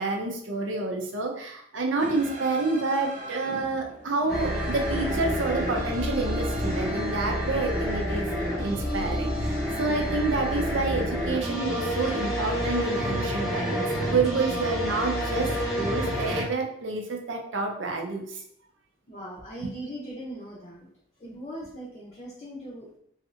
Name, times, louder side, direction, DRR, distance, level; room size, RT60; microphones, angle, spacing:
voice 1, 0.0-8.3 8.6-18.4, right 3 dB, 85° right, 3 dB, 0.6 m, -29 dB
Semana Santa-Cordoba, 2.0-7.3, right 1 dB, 40° right, 0.6 m, -40 dB
sound 1, 4.3-16.5, equal, ahead, 0.9 m, -28 dB
voice 2, 19.1-20.9 21.2-23.0, right 1 dB, 35° left, -3 dB, 0.6 m, -39 dB
3.2 x 2.8 x 2.5 m, 0.68 s
head